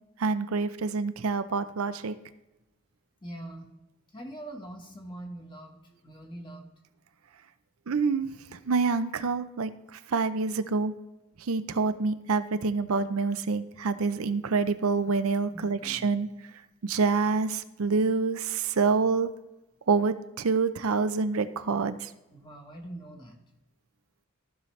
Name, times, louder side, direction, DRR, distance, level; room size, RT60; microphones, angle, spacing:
voice 1, 0.2-2.1 7.9-10.9 11.4-16.3 16.8-19.3 19.9-22.1, right 4 dB, 85° right, 11 dB, 0.5 m, -27 dB
voice 2, 3.2-3.7 4.1-6.7 15.5-16.2 17.9-18.1 22.3-23.4, right 1 dB, 20° left, 2 dB, 1.3 m, -43 dB
14.5 x 5.6 x 3.2 m, 0.99 s
head